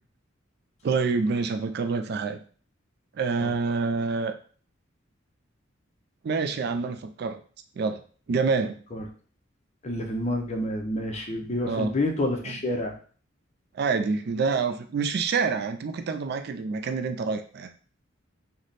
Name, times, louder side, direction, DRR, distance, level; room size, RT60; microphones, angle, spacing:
voice 1, 0.8-2.4 3.2-4.3 6.2-7.4 7.8-8.0 8.3-8.8 11.7-11.9 12.4-12.6 13.7-17.7, right 4 dB, 55° right, 8 dB, 0.3 m, -27 dB
voice 2, 9.8-12.9, left 1 dB, 35° left, 3 dB, 0.6 m, -28 dB
3.2 x 2.1 x 3.9 m, 0.42 s
head